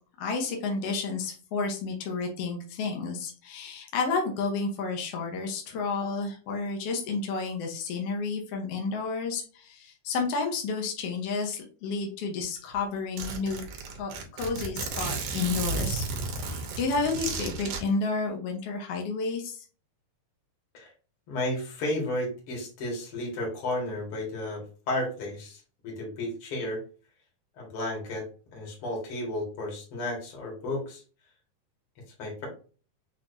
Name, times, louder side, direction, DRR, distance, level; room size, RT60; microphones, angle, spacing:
voice 1, 0.2-13.6 13.9-16.0 16.4-19.6, left 4 dB, 70° left, 1 dB, 1.4 m, -31 dB
Zipper (clothing), 12.4-12.5 12.7-12.8 13.2-17.8, right 4 dB, 75° right, 2.4 m, -33 dB
voice 2, 21.3-26.8 27.6-28.3 28.5-31.0 32.2-32.5, left 1 dB, 45° left, -2 dB, 2.3 m, -33 dB
6.4 x 3.0 x 2.6 m, 0.37 s
omnidirectional pair, 4.0 m